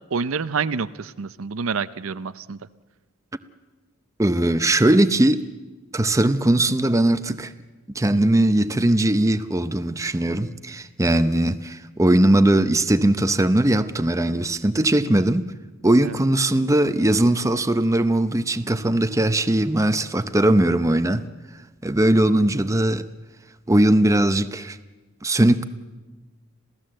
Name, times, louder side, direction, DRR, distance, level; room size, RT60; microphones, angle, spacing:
voice 1, 0.1-2.6 16.0-16.2, right 5 dB, 80° right, 0.6 m, -27 dB
voice 2, 4.2-5.5 5.9-7.5 7.9-15.4 15.8-21.2 21.8-23.0 23.7-24.8 25.2-25.6, right 1 dB, 15° right, 0.7 m, -19 dB
27.0 x 16.0 x 7.7 m
head